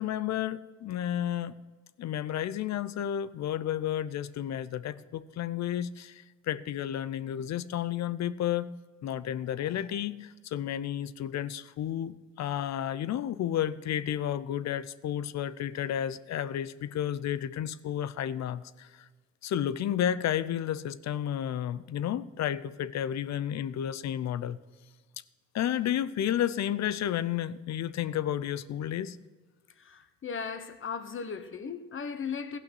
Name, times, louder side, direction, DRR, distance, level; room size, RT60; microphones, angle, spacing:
voice 1, 0.0-1.6 2.0-8.7 9.0-19.1 19.4-24.6 25.5-29.2, left 10 dB, 65° left, 16 dB, 0.6 m, -32 dB
voice 2, 29.8-32.6, left 6 dB, 40° left, 10 dB, 1.2 m, -37 dB
16.0 x 5.9 x 7.7 m, 1.4 s
cardioid pair, 90°, 30 cm